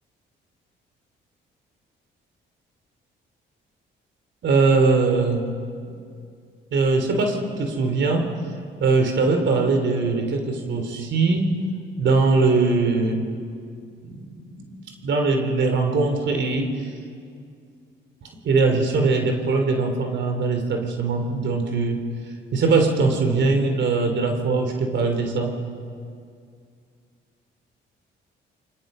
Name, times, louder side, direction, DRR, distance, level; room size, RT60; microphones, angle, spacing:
voice 1, 4.4-5.5 6.7-8.3 8.8-11.5 12.0-13.3 14.0-14.7 15.0-16.7 18.2-22.0 22.5-25.5, right 3 dB, 65° right, 4 dB, 3.4 m, -21 dB
29.5 x 24.5 x 5.6 m, 2.3 s
cardioid pair, 90°, 20 cm